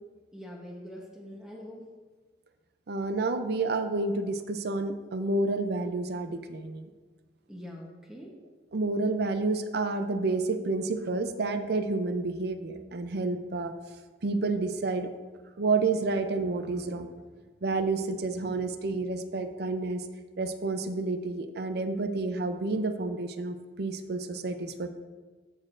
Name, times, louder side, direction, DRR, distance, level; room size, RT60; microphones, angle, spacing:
voice 1, 0.3-1.8 7.5-8.3, equal, 5° right, -2 dB, 1.0 m, -43 dB
voice 2, 2.9-6.9 8.7-13.7 14.2-15.1 15.6-17.1 17.6-20.0 20.4-24.9, right 3 dB, 65° right, 9 dB, 0.5 m, -29 dB
13.5 x 6.4 x 2.6 m, 1.4 s
head